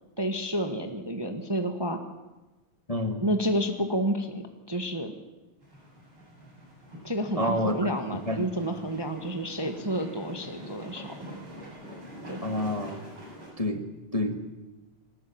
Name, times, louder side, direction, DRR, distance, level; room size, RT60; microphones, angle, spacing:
voice 1, 0.2-2.0 3.2-5.1 7.0-11.3 12.3-12.5, equal, 15° right, 5 dB, 1.4 m, -30 dB
voice 2, 2.9-3.2 7.3-7.9 8.3-8.5 12.4-13.0 13.6-13.8 14.1-14.4, left 1 dB, 20° left, 5 dB, 1.5 m, -28 dB
sound 1, 5.6-13.5, equal, 70° right, 8.2 m, -44 dB
21.5 x 19.0 x 8.8 m, 1.1 s
omnidirectional pair, 2.3 m